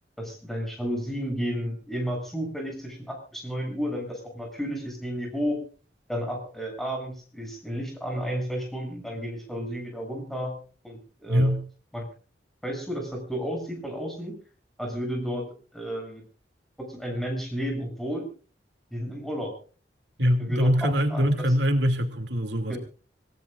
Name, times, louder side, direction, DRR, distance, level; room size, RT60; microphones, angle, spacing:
voice 1, 0.2-5.6 6.1-10.6 10.8-11.5 11.9-12.1 12.6-14.4 14.8-16.2 16.8-18.3 18.9-19.5 20.4-21.2 22.7-22.8, equal, ahead, 2 dB, 7.7 m, -32 dB
voice 2, 11.3-11.6 20.2-22.8, equal, 80° right, 5 dB, 2.7 m, -23 dB
27.0 x 17.0 x 2.5 m, 0.39 s
head